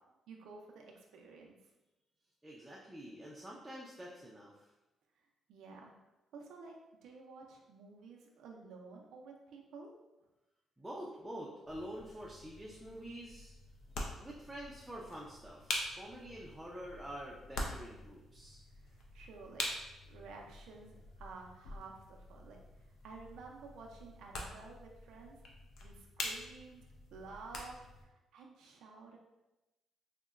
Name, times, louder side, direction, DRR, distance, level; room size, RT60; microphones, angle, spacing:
voice 1, 0.3-1.6 5.5-6.0 6.3-6.7 7.0-9.9 18.7-19.7 20.1-22.6 23.0-25.4 25.8-29.2, right 4 dB, 80° right, 0 dB, 0.4 m, -52 dB
voice 2, 2.4-4.7 10.8-13.5 14.2-18.6, equal, 10° right, -4 dB, 0.4 m, -47 dB
sound 1, 11.7-28.0, left 2 dB, 70° left, 0.5 m, -45 dB
3.7 x 2.1 x 2.4 m, 1.0 s
cardioid pair, 90°, 0 cm